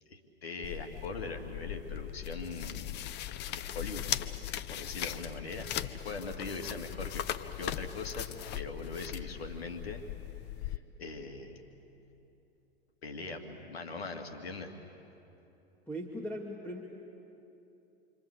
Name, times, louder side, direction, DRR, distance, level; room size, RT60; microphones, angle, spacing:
voice 1, 0.1-3.0 3.5-4.1 4.4-7.2 7.5-8.3 8.5-10.0 10.6-11.6 13.0-14.7, left 3 dB, 85° left, 4 dB, 2.6 m, -41 dB
sound 1, 0.6-10.8, left 11 dB, 35° left, 1.0 m, -39 dB
voice 2, 15.9-16.8, equal, 5° left, -1 dB, 2.5 m, -39 dB
27.5 x 25.5 x 8.2 m, 2.9 s
hypercardioid pair, 105°, 30 cm